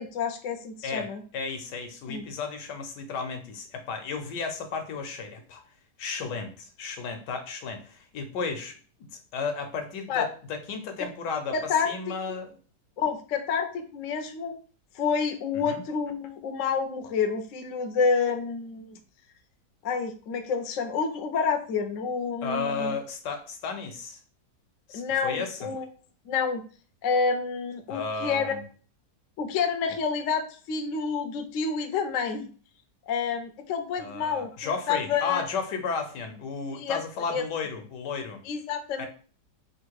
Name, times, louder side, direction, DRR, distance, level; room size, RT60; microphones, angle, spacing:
voice 1, 0.0-1.2 2.1-2.2 10.1-10.3 11.5-11.9 12.3-12.4 13.0-14.6 14.9-19.0 19.8-23.0 24.9-25.9 26.3-26.6 27.0-28.6 29.4-32.5 33.1-35.4 36.7-37.0 37.3-37.4 38.4-39.1, left 5 dB, 60° left, 6 dB, 0.8 m, -28 dB
voice 2, 0.8-5.6 6.0-8.8 9.3-12.5 15.7-15.8 22.4-24.2 24.9-25.7 27.9-28.6 34.0-38.4 39.0-39.1, left 5 dB, 80° left, 7 dB, 1.4 m, -33 dB
3.6 x 2.6 x 4.6 m, 0.39 s
omnidirectional pair, 1.8 m